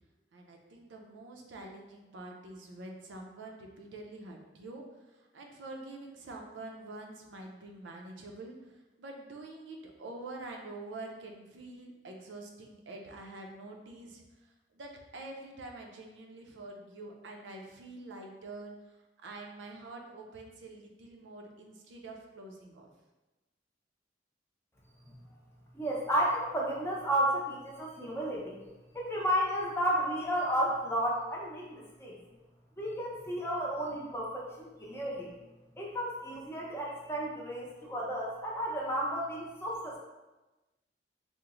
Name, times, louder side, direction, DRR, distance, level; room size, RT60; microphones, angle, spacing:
voice 1, 0.3-22.9, right 2 dB, 90° right, 1 dB, 0.5 m, -46 dB
voice 2, 25.7-28.6 28.9-32.2 32.8-35.3 35.7-40.0, equal, 15° left, -4 dB, 0.6 m, -32 dB
3.0 x 2.0 x 3.6 m, 1.1 s
head